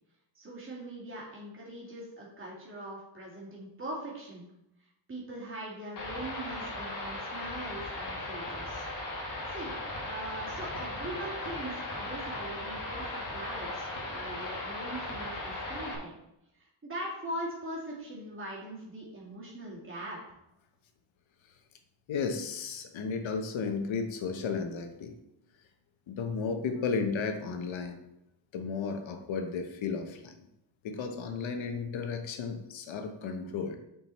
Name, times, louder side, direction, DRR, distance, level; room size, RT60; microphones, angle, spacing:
voice 1, 0.3-4.5 5.1-8.8 9.5-9.7 10.0-16.1 16.6-20.2, right 1 dB, 25° right, -5 dB, 2.3 m, -41 dB
sound 1, 6.0-16.0, left 2 dB, 45° left, 1.6 m, -37 dB
voice 2, 22.1-25.1 26.1-28.0 28.5-30.4 30.8-33.8, left 5 dB, 80° left, 6 dB, 1.0 m, -34 dB
7.3 x 4.6 x 4.1 m, 0.85 s
wide cardioid pair, 165°, 46 cm